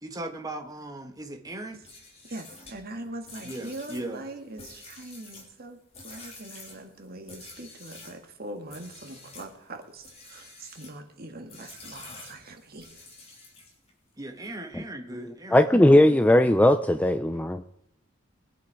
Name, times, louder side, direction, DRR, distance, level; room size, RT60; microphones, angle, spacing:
voice 1, 0.0-1.8 3.4-4.2 14.2-15.9, right 1 dB, 20° right, 1.5 m, -38 dB
sound 1, 1.7-8.2 8.7-9.5 10.0-11.0 11.5-13.9, left 3 dB, 30° left, 3.5 m, -48 dB
voice 2, 2.2-13.0, right 1 dB, 50° right, 1.9 m, -42 dB
voice 3, 15.5-17.6, left 1 dB, 5° left, 0.5 m, -18 dB
22.5 x 8.3 x 4.8 m
head